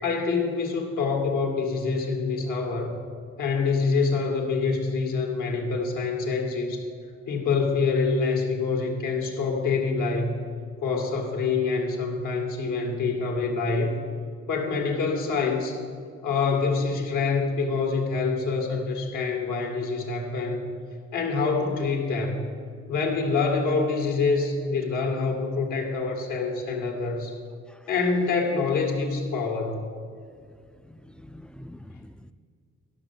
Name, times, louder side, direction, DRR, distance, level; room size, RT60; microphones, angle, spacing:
voice 1, 0.0-3.0 3.4-6.9 7.3-10.4 10.8-14.0 14.5-15.8 16.2-20.7 21.1-22.4 22.9-27.4 27.9-29.8, left 4 dB, 80° left, 1.9 m, -26 dB
voice 2, 30.8-32.3, left 1 dB, 5° left, 0.3 m, -46 dB
11.5 x 5.9 x 7.2 m
cardioid pair, 90°, 30 cm